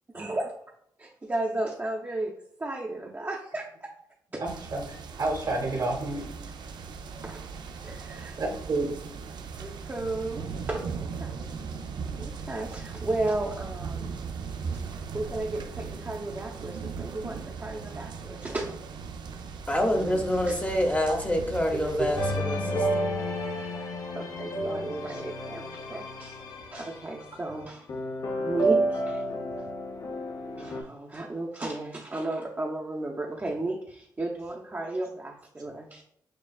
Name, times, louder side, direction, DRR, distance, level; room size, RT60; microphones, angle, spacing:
voice 1, 0.1-0.5 1.0-2.3 2.6-3.9 4.3-4.4 7.2-7.4 7.8-8.4 9.6-11.5 12.1-14.1 15.1-18.8 20.5-20.6 24.1-26.4 26.7-27.9 28.4-29.2 30.6-36.0, right 2 dB, 25° right, -2 dB, 0.7 m, -34 dB
voice 2, 4.4-6.3 8.4-9.0 19.9-20.2 21.1-21.2 21.7-22.1, right 2 dB, 60° right, 2 dB, 1.1 m, -30 dB
sound 1, 4.4-22.4, right 5 dB, 75° right, 0.4 m, -38 dB
voice 3, 19.7-23.1, left 1 dB, 20° left, 3 dB, 0.8 m, -27 dB
sound 2, 22.2-27.3 27.9-30.8, right 1 dB, 55° left, 0.8 m, -31 dB
6.5 x 2.3 x 2.3 m, 0.68 s
cardioid pair, 60°, 8 cm